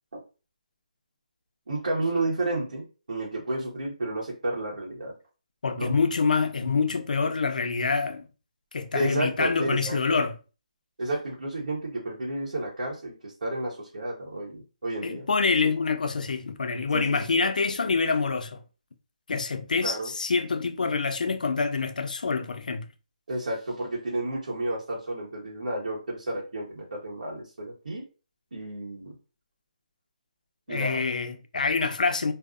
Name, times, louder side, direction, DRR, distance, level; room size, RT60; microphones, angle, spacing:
voice 1, 1.7-5.1 5.8-5.9 8.9-10.2 11.0-15.3 15.6-15.7 16.9-17.3 19.8-20.1 23.3-28.0 28.5-29.1 30.7-31.0, right 2 dB, 85° right, 0.9 m, -31 dB
voice 2, 5.6-8.2 8.7-10.3 15.0-18.6 19.3-22.9 30.7-32.3, left 4 dB, 75° left, 0.4 m, -26 dB
2.6 x 2.0 x 2.3 m
hypercardioid pair, 170°, 4 cm